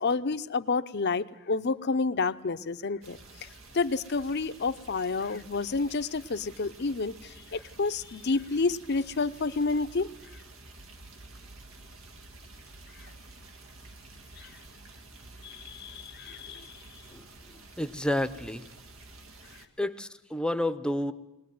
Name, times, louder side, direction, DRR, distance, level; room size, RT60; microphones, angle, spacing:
voice 1, 0.0-10.1 14.4-14.5 15.4-16.8, left 4 dB, 55° left, 13 dB, 0.7 m, -30 dB
sound 1, 3.0-19.7, right 2 dB, 85° right, 1.9 m, -50 dB
voice 2, 17.8-18.7 19.8-21.1, left 1 dB, 5° left, 11 dB, 0.8 m, -30 dB
21.5 x 19.5 x 9.4 m, 0.98 s
head